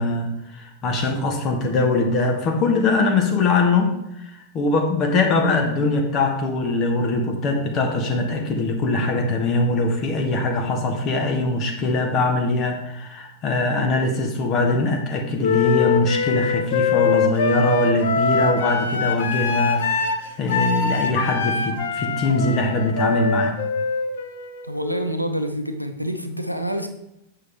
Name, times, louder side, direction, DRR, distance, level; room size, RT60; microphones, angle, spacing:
voice 1, 0.0-3.9 4.2-23.5, left 2 dB, 35° left, 3 dB, 1.2 m, -22 dB
Wind instrument woodwind instrument, 15.4-25.2, left 5 dB, 60° left, 0.8 m, -23 dB
voice 2, 24.6-26.9, equal, 90° right, 6 dB, 0.7 m, -27 dB
8.1 x 5.7 x 3.5 m, 0.83 s
figure-of-eight pair, 90°, 0 cm